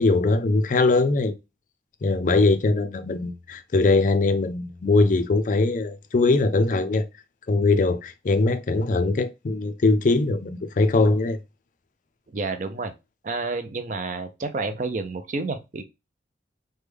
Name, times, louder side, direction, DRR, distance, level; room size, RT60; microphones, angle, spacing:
voice 1, 0.0-1.4 2.0-7.1 7.5-11.4, left 3 dB, 45° left, 0.4 m, -21 dB
voice 2, 12.3-12.9 13.2-15.8, right 3 dB, 40° right, 0.4 m, -29 dB
3.4 x 2.2 x 3.2 m
head